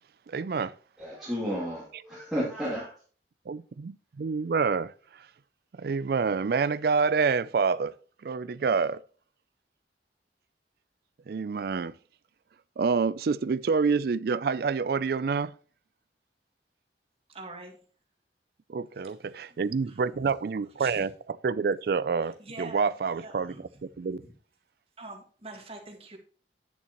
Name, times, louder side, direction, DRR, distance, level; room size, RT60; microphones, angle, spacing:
voice 1, 0.3-0.7 3.5-4.9 5.8-7.9 8.2-9.0 11.3-11.9 12.8-15.5 18.7-21.1 21.4-23.5 24.0-24.2, right 5 dB, 55° right, 0.4 m, -27 dB
voice 2, 1.0-3.0, equal, ahead, 2.5 m, -33 dB
voice 3, 17.3-17.8 18.9-19.6 19.9-20.2 20.8-21.1 22.2-24.3 25.0-26.2, right 2 dB, 35° right, 1.9 m, -46 dB
9.6 x 8.4 x 3.0 m
head